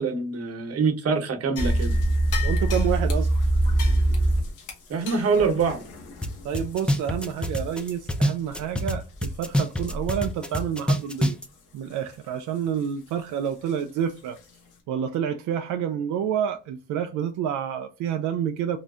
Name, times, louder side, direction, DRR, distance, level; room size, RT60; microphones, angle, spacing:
voice 1, 0.0-1.9 4.9-5.8, right 5 dB, 55° right, 1.0 m, -24 dB
sound 1, 1.6-8.1 8.5-8.6 9.1-9.4 9.8-10.2 10.5-10.6 11.2-11.3 13.7-13.8 14.4-14.5, right 1 dB, 85° left, 1.1 m, -25 dB
voice 2, 2.4-3.3 6.4-11.4 11.7-14.4 14.9-18.8, right 9 dB, 80° right, 0.4 m, -28 dB
sound 2, 6.2-6.3 6.5-8.9 9.2-11.5, equal, 5° left, 0.4 m, -25 dB
3.8 x 2.4 x 2.4 m
cardioid pair, 90°, 30 cm